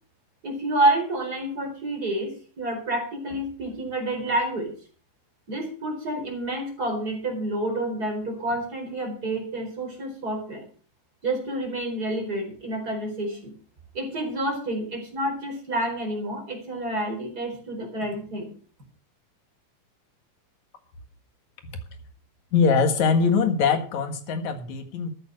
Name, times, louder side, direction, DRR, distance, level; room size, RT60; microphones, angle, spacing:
voice 1, 0.4-4.7 5.5-10.6 11.2-13.5 13.9-18.5, right 1 dB, 25° right, 2 dB, 4.8 m, -28 dB
voice 2, 22.5-25.1, left 5 dB, 60° left, 8 dB, 2.9 m, -22 dB
14.0 x 8.8 x 6.3 m, 0.41 s
omnidirectional pair, 4.0 m